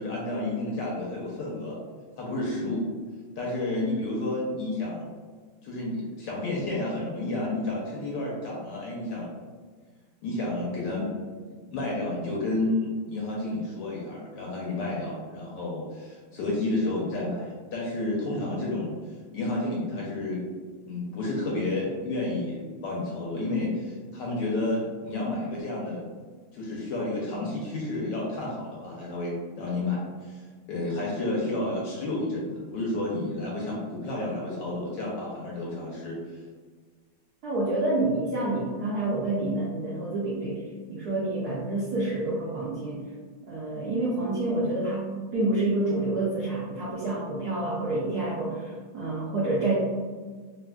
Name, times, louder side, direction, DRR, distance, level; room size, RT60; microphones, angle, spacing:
voice 1, 0.0-1.8 2.2-2.9 3.4-5.1 5.6-9.3 10.2-11.1 11.7-18.9 19.3-20.4 20.8-26.0 26.5-36.4, left 2 dB, 70° left, -4 dB, 1.1 m, -31 dB
voice 2, 37.4-40.6 40.9-43.0 43.5-49.7, right 2 dB, 80° right, -7 dB, 0.8 m, -28 dB
3.4 x 2.4 x 2.2 m, 1.5 s
omnidirectional pair, 2.3 m